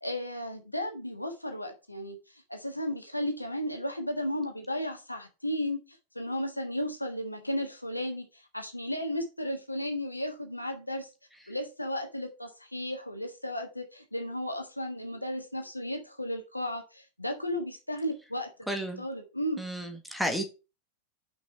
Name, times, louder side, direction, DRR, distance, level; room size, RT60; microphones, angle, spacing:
voice 1, 0.0-11.1 11.5-19.6, left 1 dB, 85° left, 1.4 m, -34 dB
voice 2, 18.7-19.0 19.6-20.4, equal, ahead, 1.7 m, -32 dB
6.0 x 5.3 x 5.7 m
figure-of-eight pair, 90°, 0 cm